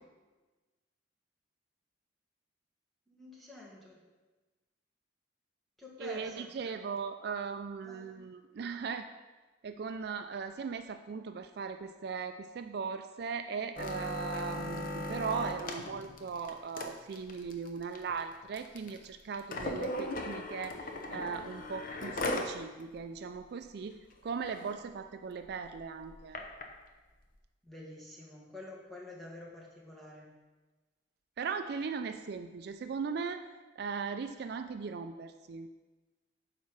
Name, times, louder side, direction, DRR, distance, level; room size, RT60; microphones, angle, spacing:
voice 1, 3.1-4.0 5.8-6.5 7.8-8.1 27.6-30.3, left 2 dB, ahead, -5 dB, 1.7 m, -48 dB
voice 2, 6.0-9.1 9.6-20.8 21.1-24.0 24.2-26.4 31.4-33.5 33.8-35.7, right 5 dB, 55° right, 8 dB, 0.3 m, -38 dB
sound 1, 13.8-22.5 23.0-23.1 23.3-23.6 24.1-24.2 24.4-24.7 25.4-26.6 27.4-27.5, left 1 dB, 45° left, 0.9 m, -38 dB
9.2 x 4.3 x 5.8 m, 1.2 s
head